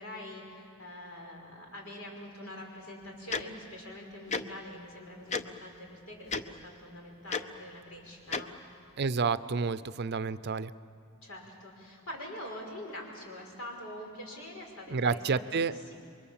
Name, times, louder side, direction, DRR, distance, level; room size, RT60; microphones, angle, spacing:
voice 1, 0.0-8.5 11.2-15.9, left 1 dB, 85° left, 0 dB, 5.6 m, -45 dB
Tick-tock, 3.3-3.4 4.3-4.4 5.3-5.4 6.3-6.4 7.3-7.4 8.3-8.4, left 4 dB, 30° left, 0.7 m, -31 dB
voice 2, 9.0-10.7 14.9-15.7, right 5 dB, 50° right, 15 dB, 0.5 m, -29 dB
28.0 x 23.5 x 7.3 m, 2.5 s
head